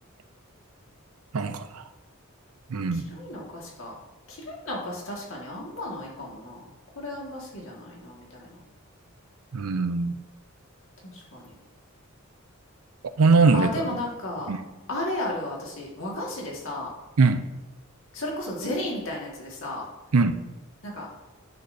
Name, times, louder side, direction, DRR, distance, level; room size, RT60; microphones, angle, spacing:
voice 1, 1.3-1.8 2.7-3.1 9.5-10.1 13.2-13.7 14.5-14.6 17.2-17.5 20.1-20.4, right 4 dB, 90° right, 10 dB, 0.6 m, -21 dB
voice 2, 2.9-3.9 4.3-6.6 6.9-8.6 11.0-11.5 13.5-14.5 14.9-16.9 18.1-19.8 20.8-21.1, left 1 dB, 65° left, -3 dB, 1.8 m, -34 dB
10.0 x 6.5 x 2.7 m, 1.1 s
head